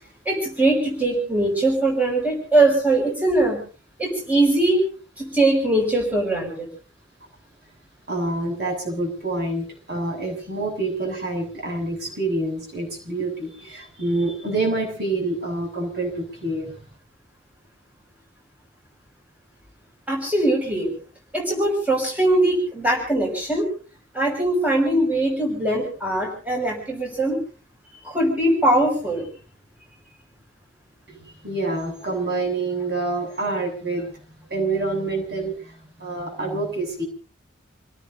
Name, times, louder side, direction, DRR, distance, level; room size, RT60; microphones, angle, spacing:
voice 1, 0.2-3.6 4.0-4.8 5.2-6.7 20.1-20.9 21.3-23.7 24.1-27.4 28.0-29.3, right 1 dB, 10° right, -1 dB, 6.0 m, -21 dB
voice 2, 8.1-16.7 31.1-34.2 34.5-37.0, right 2 dB, 55° right, 1 dB, 7.5 m, -27 dB
29.0 x 18.0 x 2.7 m, 0.39 s
head